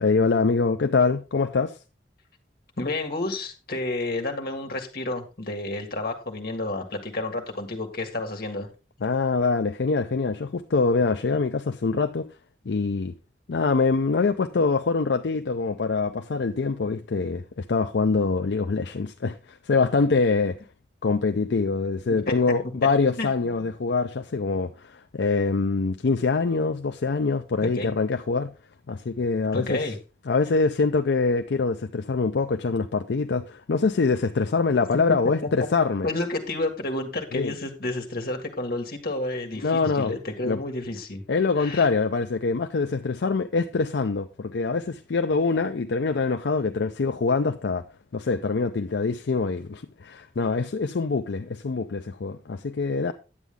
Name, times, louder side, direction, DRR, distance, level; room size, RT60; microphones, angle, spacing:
voice 1, 0.0-1.8 9.0-12.3 12.7-13.1 13.5-20.6 21.0-28.5 28.9-29.8 30.3-36.1 37.3-37.5 39.6-40.1 40.4-40.6 41.3-47.8 48.1-53.1, left 4 dB, 75° left, 0.5 m, -24 dB
voice 2, 2.8-8.7 22.3-22.4 23.2-23.3 27.6-27.9 29.5-30.0 35.4-35.5 36.0-41.2 41.6-41.9, left 2 dB, 60° left, 1.8 m, -30 dB
9.7 x 8.3 x 3.6 m
head